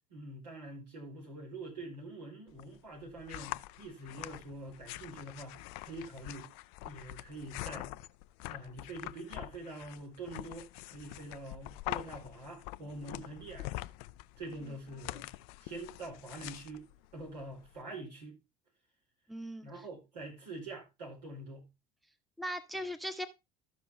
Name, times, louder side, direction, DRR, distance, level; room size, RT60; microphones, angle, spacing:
voice 1, 0.1-6.5 6.8-7.9 8.5-13.8 14.4-15.3 15.6-16.9 17.1-18.4 19.6-21.7, right 2 dB, 80° right, 4.7 m, -45 dB
sound 1, 2.5-17.8, left 18 dB, 60° left, 0.5 m, -45 dB
voice 2, 19.3-19.8 22.4-23.3, equal, ahead, 1.0 m, -39 dB
13.5 x 5.9 x 3.5 m
figure-of-eight pair, 65°, 21 cm